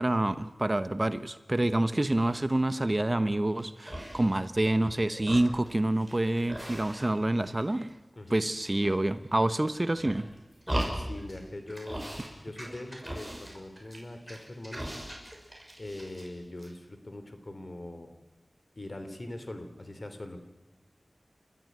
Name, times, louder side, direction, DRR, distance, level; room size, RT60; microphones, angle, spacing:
voice 1, 0.0-7.9 8.3-10.3, right 1 dB, 30° right, 12 dB, 0.9 m, -27 dB
sound 1, 2.1-2.5 3.0-3.6 3.9-4.9 5.1-7.3 7.6-8.3 8.6-9.4 9.9-11.4 11.7-12.3 12.6-16.3 16.6-16.7, equal, 5° right, 6.3 m, -39 dB
voice 2, 10.9-12.0 12.4-14.9 15.8-18.1 18.7-20.4, left 1 dB, 45° left, 8 dB, 3.3 m, -42 dB
30.0 x 14.0 x 9.4 m, 1.1 s
wide cardioid pair, 55°, 0 cm